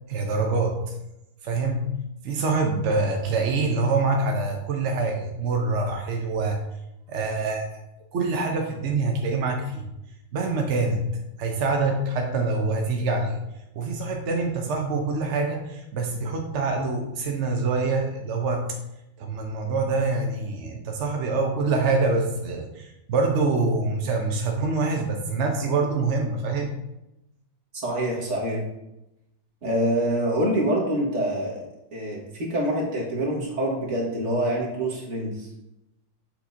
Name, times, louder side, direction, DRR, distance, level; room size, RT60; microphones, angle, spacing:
voice 1, 0.1-0.9 1.4-1.9 2.2-6.6 7.1-7.7 8.1-9.9 10.3-11.1 11.4-13.4 13.7-18.8 19.2-26.8, right 3 dB, 65° right, 2 dB, 0.7 m, -25 dB
voice 2, 27.8-28.6 29.6-31.6 31.9-35.5, right 1 dB, 40° right, -3 dB, 1.8 m, -26 dB
7.1 x 5.8 x 2.7 m, 0.89 s
omnidirectional pair, 2.1 m